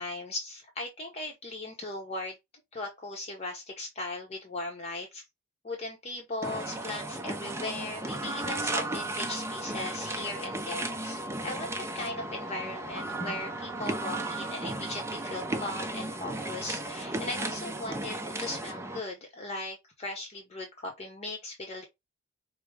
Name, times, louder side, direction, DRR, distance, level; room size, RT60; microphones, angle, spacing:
voice 1, 0.0-2.4 2.7-5.2 5.6-21.8, left 2 dB, 30° left, 0.7 m, -38 dB
sound 1, 6.4-19.0, right 2 dB, 15° right, 0.5 m, -35 dB
4.8 x 2.0 x 3.3 m
head